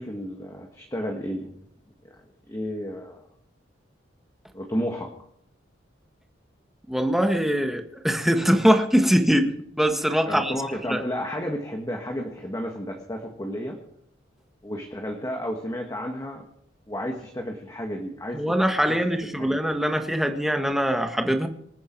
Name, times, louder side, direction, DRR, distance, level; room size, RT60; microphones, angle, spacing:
voice 1, 0.0-1.5 2.1-2.2 2.5-3.2 4.5-5.1 10.3-13.8 14.6-16.5 16.9-19.0 19.4-19.6, equal, 20° left, 1 dB, 1.7 m, -32 dB
voice 2, 6.9-10.5 10.9-11.0 18.3-21.5, equal, ahead, 5 dB, 1.4 m, -22 dB
26.0 x 9.4 x 4.6 m, 0.70 s
head